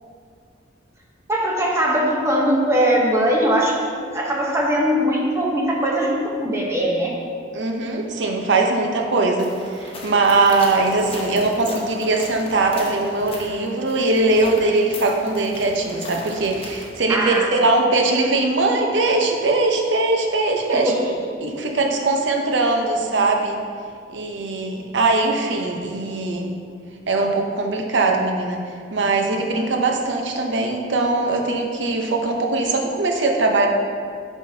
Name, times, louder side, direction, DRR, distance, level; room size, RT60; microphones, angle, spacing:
voice 1, 1.3-3.8 4.1-7.1 17.1-17.5 20.8-21.1, equal, 15° right, -2 dB, 0.8 m, -20 dB
voice 2, 7.5-20.9 21.4-23.6 24.1-26.5 27.1-28.6 28.9-33.7, right 3 dB, 75° right, 2 dB, 0.7 m, -21 dB
sound 1, 9.4-17.0, left 2 dB, 30° left, 0.9 m, -37 dB
11.0 x 3.6 x 2.7 m, 2.2 s
head